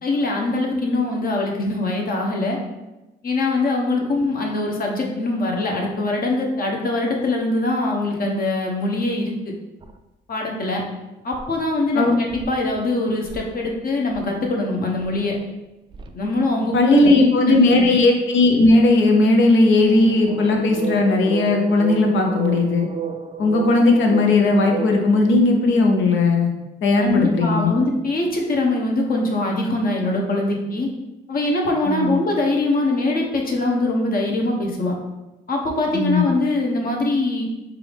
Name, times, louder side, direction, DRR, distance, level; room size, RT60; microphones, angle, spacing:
voice 1, 0.0-2.6 3.2-9.5 10.3-10.8 11.2-15.4 16.1-17.9 27.0-30.9 31.3-34.9 35.5-37.4, left 2 dB, 45° left, 0 dB, 0.9 m, -23 dB
sound 1, 9.8-10.0 11.3-11.4 12.3-12.8 13.2-13.7 14.1-14.3 15.0-15.2 15.9-16.2 19.9-25.1, right 6 dB, 25° right, 0.4 m, -31 dB
voice 2, 16.7-22.9 23.4-26.5 26.8-27.7 31.9-32.1 35.9-36.2, left 2 dB, 75° left, 2 dB, 0.8 m, -17 dB
4.5 x 2.5 x 3.5 m, 1.0 s
cardioid pair, 90°, 20 cm